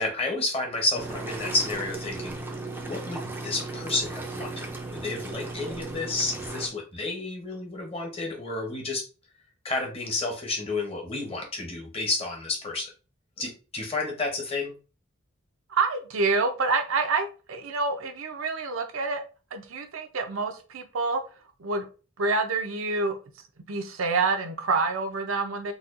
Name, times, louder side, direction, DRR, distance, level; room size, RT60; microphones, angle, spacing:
voice 1, 0.0-2.4 2.8-9.0 9.6-12.9 13.4-14.7, left 2 dB, 30° left, 1 dB, 0.8 m, -31 dB
sound 1, 0.9-6.7, right 3 dB, 10° right, 0.4 m, -36 dB
voice 2, 15.7-19.2 19.5-21.2 21.6-21.9 22.2-23.2 23.7-25.7, right 3 dB, 75° right, 6 dB, 0.6 m, -27 dB
4.1 x 2.2 x 2.5 m, 0.34 s
head